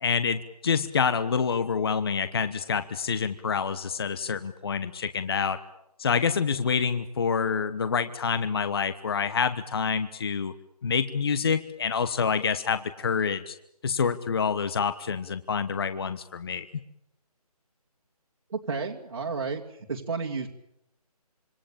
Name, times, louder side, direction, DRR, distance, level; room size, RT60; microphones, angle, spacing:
voice 1, 0.0-5.6 6.0-10.5 10.8-13.5 13.8-16.7, left 6 dB, 40° left, 12 dB, 1.2 m, -27 dB
voice 2, 18.5-19.6 19.9-20.5, right 4 dB, 55° right, -2 dB, 2.8 m, -31 dB
26.5 x 23.5 x 8.9 m, 0.81 s
figure-of-eight pair, 165°, 20 cm